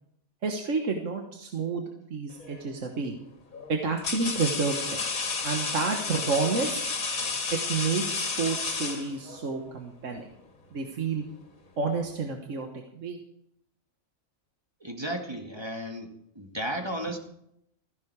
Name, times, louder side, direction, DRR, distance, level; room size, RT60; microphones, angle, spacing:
voice 1, 0.4-3.1 3.7-5.0 5.4-6.8 7.2-10.3 10.7-11.2 11.8-13.2, right 4 dB, 65° right, 3 dB, 1.7 m, -30 dB
sound 1, 2.4-2.7 3.5-9.5, left 4 dB, 80° left, 2.3 m, -32 dB
voice 2, 14.8-17.2, right 1 dB, 20° right, 3 dB, 1.8 m, -34 dB
15.5 x 15.0 x 4.7 m, 0.76 s
omnidirectional pair, 1.4 m